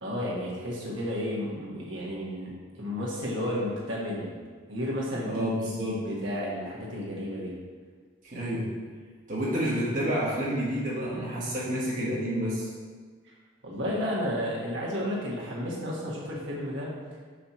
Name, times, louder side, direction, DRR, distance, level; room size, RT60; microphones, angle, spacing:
voice 1, 0.0-4.3 4.7-5.5 5.8-7.5 13.2-13.3 13.6-16.9, equal, 65° right, -5 dB, 1.5 m, -32 dB
voice 2, 5.2-6.0 8.2-8.7 9.3-12.7, equal, 40° right, -8 dB, 1.2 m, -29 dB
4.9 x 4.4 x 6.0 m, 1.6 s
head